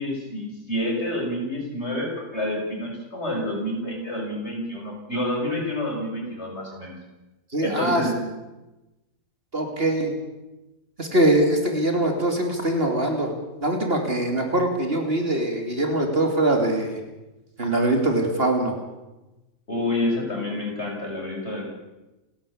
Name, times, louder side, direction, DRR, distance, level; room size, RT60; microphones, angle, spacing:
voice 1, 0.0-6.9 7.6-8.2 19.7-21.6, left 1 dB, 45° left, 0 dB, 6.5 m, -28 dB
voice 2, 7.5-8.1 9.5-10.1 11.0-13.3 13.6-17.0 17.6-18.8, right 1 dB, 40° right, 4 dB, 2.9 m, -22 dB
29.5 x 11.5 x 8.6 m, 1.0 s
omnidirectional pair, 1.5 m